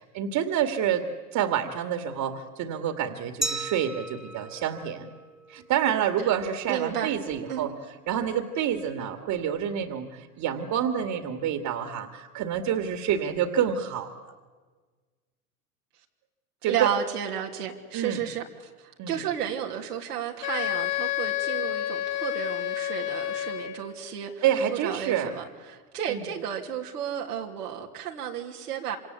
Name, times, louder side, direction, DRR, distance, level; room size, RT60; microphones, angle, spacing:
voice 1, 0.0-5.1 5.5-7.7 8.1-14.3 16.6-16.9 17.9-18.2 19.0-19.2 24.4-25.3 26.1-26.2, right 9 dB, 45° right, 8 dB, 2.4 m, -28 dB
Glass, 3.4-6.1, right 2 dB, ahead, 1.6 m, -36 dB
voice 2, 6.7-7.1 7.5-7.7 16.6-24.4 24.7-29.0, right 9 dB, 90° right, 0 dB, 3.1 m, -32 dB
Wind instrument woodwind instrument, 20.4-24.0, left 14 dB, 55° left, 4.4 m, -30 dB
26.5 x 26.5 x 8.3 m, 1.4 s
hypercardioid pair, 100°, 45 cm